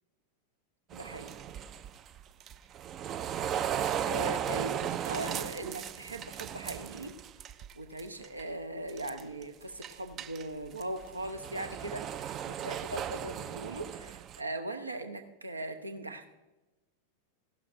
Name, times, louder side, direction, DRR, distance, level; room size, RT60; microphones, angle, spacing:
sound 1, 0.9-7.7 8.0-8.4 8.9-9.4 9.8-14.4, right 9 dB, 30° right, 0.3 m, -36 dB
voice 1, 0.9-1.3 4.1-7.2 7.7-16.3, right 1 dB, 80° right, 7 dB, 0.8 m, -39 dB
16.0 x 12.0 x 2.6 m, 1.1 s
figure-of-eight pair, 90°, 0 cm